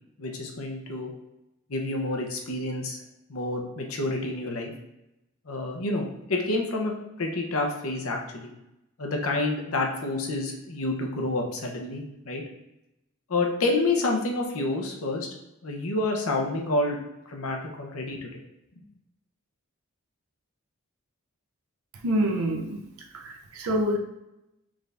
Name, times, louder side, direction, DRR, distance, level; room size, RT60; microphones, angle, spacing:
voice 1, 0.2-1.1 1.7-3.0 3.3-4.7 5.5-8.5 9.0-12.4 13.3-15.3 15.6-17.0 17.3-18.4, left 2 dB, 75° left, 1 dB, 0.8 m, -28 dB
voice 2, 22.0-22.8 23.1-24.0, equal, 80° right, 2 dB, 0.6 m, -26 dB
5.0 x 2.5 x 3.3 m, 0.90 s
head